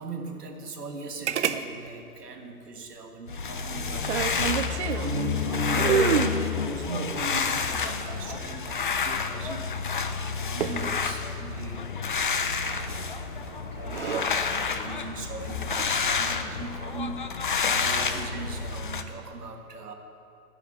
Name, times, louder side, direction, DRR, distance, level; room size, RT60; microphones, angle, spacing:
voice 1, 0.0-4.1 4.6-11.9 12.1-17.2 17.6-19.9, right 3 dB, 80° right, 3 dB, 1.6 m, -39 dB
sound 1, 1.3-1.6 1.9-2.0 3.8-5.1 5.7-6.4 7.6-8.8 10.6-11.0 12.9-13.2 13.7-14.2 15.6-15.9, right 8 dB, 50° right, 0.6 m, -28 dB
sound 2, 3.3-19.0, left 5 dB, 35° left, 0.4 m, -29 dB
10.5 x 5.8 x 8.4 m, 2.6 s
hypercardioid pair, 140°, 46 cm